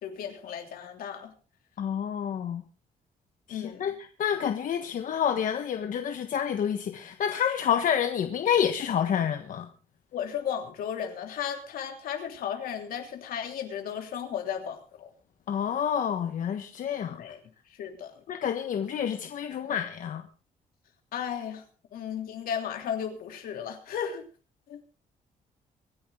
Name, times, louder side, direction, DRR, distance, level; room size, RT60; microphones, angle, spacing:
voice 1, 0.0-1.3 3.5-3.9 10.1-15.1 17.2-17.4 17.8-18.1 21.1-21.6 21.9-24.2 24.7-24.8, left 8 dB, 80° left, 3.1 m, -34 dB
voice 2, 1.8-2.6 3.5-9.7 15.5-17.2 18.3-20.2, left 8 dB, 65° left, 1.4 m, -28 dB
25.0 x 10.5 x 3.8 m
cardioid pair, 110°, 15 cm